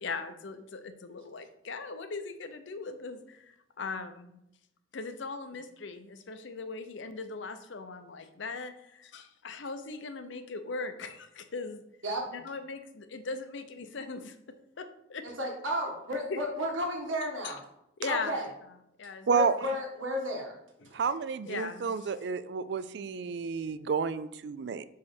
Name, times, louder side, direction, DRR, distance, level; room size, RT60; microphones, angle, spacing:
voice 1, 0.0-4.4 4.9-11.8 12.3-14.4 14.8-15.2 16.3-16.4 17.4-17.5 18.0-18.4 19.0-19.3 21.5-22.1, left 4 dB, 70° left, 9 dB, 0.6 m, -39 dB
voice 2, 15.2-17.6 18.1-18.4 19.3-20.6 20.8-21.0, equal, 80° right, 0 dB, 1.6 m, -33 dB
voice 3, 20.9-24.9, right 5 dB, 55° right, 15 dB, 0.3 m, -30 dB
5.5 x 4.9 x 4.4 m, 0.81 s
head